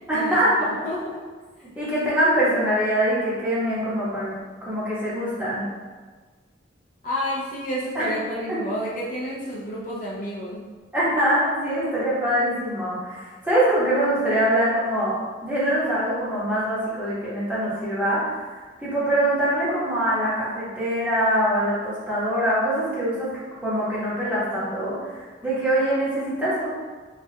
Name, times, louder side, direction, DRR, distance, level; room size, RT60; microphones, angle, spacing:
voice 1, 0.1-0.7 1.8-5.7 7.9-8.1 10.9-23.3 23.6-26.7, right 1 dB, 10° right, -10 dB, 0.9 m, -23 dB
voice 2, 0.8-1.2 1.6-1.7 7.0-10.6, equal, 45° left, -6 dB, 0.5 m, -30 dB
3.1 x 2.3 x 2.7 m, 1.4 s
head